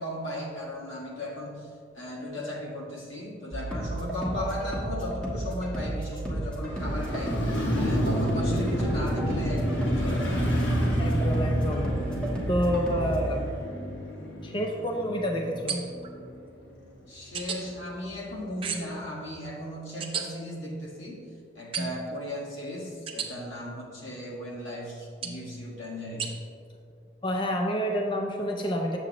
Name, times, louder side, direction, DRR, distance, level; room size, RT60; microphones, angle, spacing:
voice 1, 0.0-10.6 17.1-21.2 21.5-26.4, left 1 dB, 80° left, -4 dB, 1.7 m, -36 dB
sound 1, 3.5-13.2, right 1 dB, 5° left, 1.2 m, -33 dB
Motorcycle, 6.6-16.7 17.1-17.2, equal, 65° left, 1.5 m, -29 dB
voice 2, 11.0-12.0 12.5-13.6 14.4-15.8 27.2-29.0, equal, 25° left, 2 dB, 0.4 m, -28 dB
sound 2, 15.7-16.1 17.3-17.6 18.6-19.0 20.0-20.2 21.7-22.1 23.1-23.3 25.2-25.5 26.2-26.3, right 5 dB, 30° right, 0.6 m, -33 dB
8.0 x 7.3 x 2.9 m, 2.4 s
head